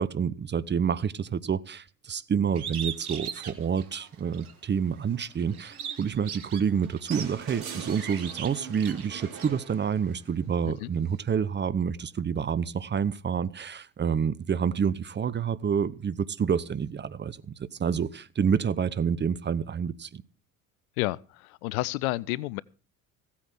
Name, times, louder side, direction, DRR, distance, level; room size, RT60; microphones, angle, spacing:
voice 1, 0.0-20.2, right 7 dB, 25° right, 0.8 m, -28 dB
Bird, 2.6-4.5 5.0-9.5, right 8 dB, 90° right, 1.5 m, -39 dB
sound 1, 7.1-10.4 12.0-12.1, right 6 dB, 70° right, 3.7 m, -42 dB
voice 2, 21.0-22.6, left 19 dB, 75° left, 0.7 m, -30 dB
16.0 x 8.6 x 5.9 m
hypercardioid pair, 70°, 43 cm